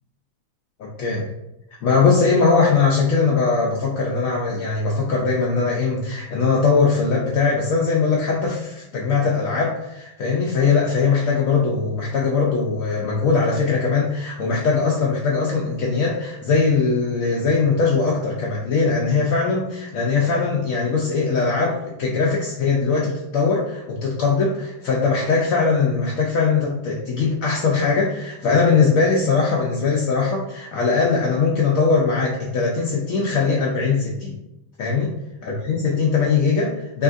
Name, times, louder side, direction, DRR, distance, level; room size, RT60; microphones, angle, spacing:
voice 1, 0.8-1.3 1.8-34.4 34.8-35.1 35.4-37.0, left 4 dB, 85° left, -2 dB, 0.7 m, -20 dB
5.2 x 3.1 x 2.5 m, 0.90 s
omnidirectional pair, 2.1 m